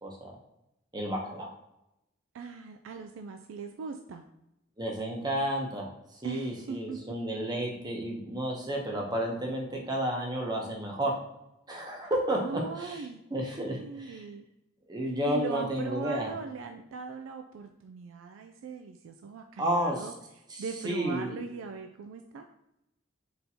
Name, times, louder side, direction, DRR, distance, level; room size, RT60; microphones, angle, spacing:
voice 1, 0.0-0.3 0.9-1.5 4.8-11.1 11.7-14.2 14.9-16.3 19.6-20.1 20.5-21.4, right 1 dB, 20° right, 0 dB, 0.7 m, -32 dB
voice 2, 2.3-4.2 6.2-7.0 12.4-13.2 13.6-14.4 15.3-20.1 20.6-22.5, right 5 dB, 85° right, 5 dB, 0.3 m, -39 dB
4.2 x 3.5 x 2.8 m, 0.88 s
head